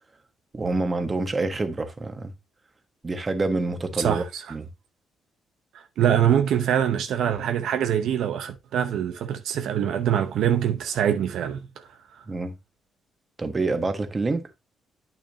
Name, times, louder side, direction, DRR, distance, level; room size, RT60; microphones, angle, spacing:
voice 1, 0.5-2.3 3.0-4.2 4.5-4.7 12.3-12.6 13.4-14.5, right 3 dB, 30° right, 1.3 m, -27 dB
voice 2, 4.0-4.4 6.0-11.6, right 9 dB, 75° right, 0.7 m, -24 dB
8.9 x 6.0 x 2.7 m
cardioid pair, 90°, 0 cm